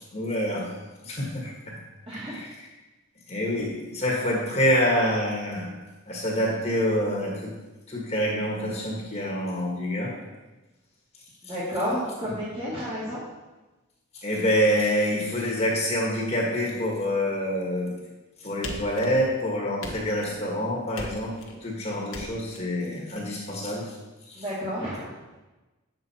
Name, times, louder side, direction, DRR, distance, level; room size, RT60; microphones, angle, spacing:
voice 1, 0.1-0.7 1.0-1.7 2.3-2.7 3.3-5.7 6.1-7.5 7.9-10.2 12.3-12.4 14.2-17.9 18.4-21.3 21.6-23.8 24.3-24.4, equal, 30° left, -2 dB, 1.7 m, -26 dB
voice 2, 2.1-2.4 11.4-13.2 24.3-25.1, equal, 25° right, -9 dB, 2.1 m, -31 dB
sound 1, 18.6-19.4 19.8-20.4 21.0-21.6 22.1-22.6, left 2 dB, 75° left, 1.4 m, -38 dB
9.3 x 7.2 x 4.3 m, 1.1 s
head